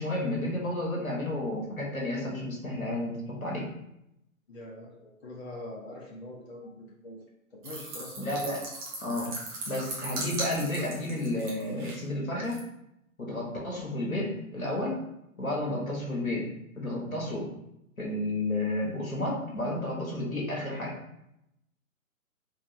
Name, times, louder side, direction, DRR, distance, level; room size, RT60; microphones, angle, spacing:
voice 1, 0.0-3.7 8.2-8.6 9.0-9.4 9.7-12.6 13.2-15.0 15.4-16.5 16.7-17.5 18.0-20.9, left 1 dB, 80° left, -2 dB, 1.3 m, -31 dB
voice 2, 4.5-7.2 7.5-8.3, left 1 dB, 50° left, -3 dB, 0.9 m, -43 dB
sound 1, 7.6-12.0 12.4-12.6, right 2 dB, 25° right, 0.9 m, -38 dB
3.5 x 2.7 x 3.2 m, 0.83 s
figure-of-eight pair, 120°, 42 cm